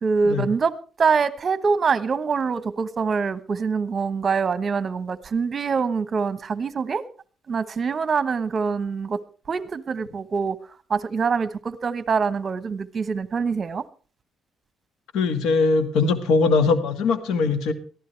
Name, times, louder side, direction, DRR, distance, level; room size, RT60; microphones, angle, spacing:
voice 1, 0.0-7.0 7.5-9.2 9.5-10.6 10.9-13.8, right 5 dB, 40° right, 14 dB, 1.2 m, -24 dB
voice 2, 15.1-17.7, left 4 dB, 85° left, 10 dB, 1.8 m, -21 dB
22.0 x 14.5 x 3.3 m, 0.38 s
cardioid pair, 90°, 0 cm